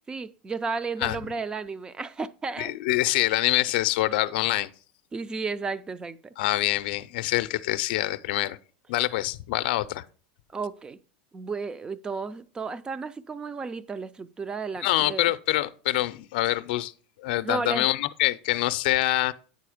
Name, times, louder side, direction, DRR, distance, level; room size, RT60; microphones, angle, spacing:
voice 1, 0.1-2.8 5.1-6.3 10.5-11.0 11.3-15.3 17.4-17.9, right 4 dB, 15° right, 0.4 m, -33 dB
voice 2, 2.6-4.7 6.4-8.6 8.9-10.0 14.8-16.9 17.2-19.3, left 16 dB, 70° left, 0.5 m, -25 dB
9.3 x 4.2 x 4.9 m
supercardioid pair, 130°, 5 cm